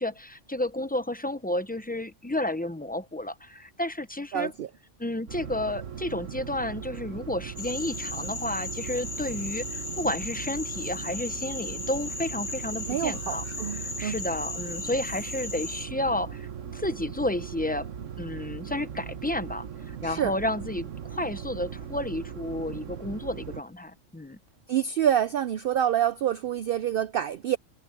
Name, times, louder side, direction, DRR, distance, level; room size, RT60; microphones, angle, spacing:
voice 1, 0.0-4.5 5.0-17.9 18.2-24.4, left 1 dB, 10° left, 0.6 m, -31 dB
voice 2, 4.3-4.7 12.9-14.1 20.0-20.3 24.7-27.6, right 10 dB, 60° right, 0.6 m, -27 dB
sound 1, 5.3-23.6, right 8 dB, 80° right, 1.4 m, -39 dB
Frog, 7.6-15.9, left 3 dB, 35° left, 1.7 m, -36 dB
omnidirectional pair, 1.3 m